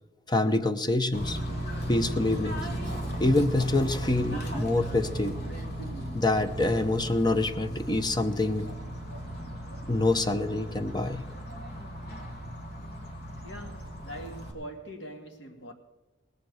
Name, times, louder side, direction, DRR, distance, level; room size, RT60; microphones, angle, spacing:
voice 1, 0.3-1.4 1.9-2.7 3.2-5.4 6.1-8.7 9.9-11.2, left 2 dB, 25° left, 0.7 m, -26 dB
Bird / Train, 1.1-14.5, equal, 55° left, 2.4 m, -36 dB
voice 2, 13.4-15.7, equal, 80° left, 2.2 m, -43 dB
19.0 x 7.5 x 6.3 m
head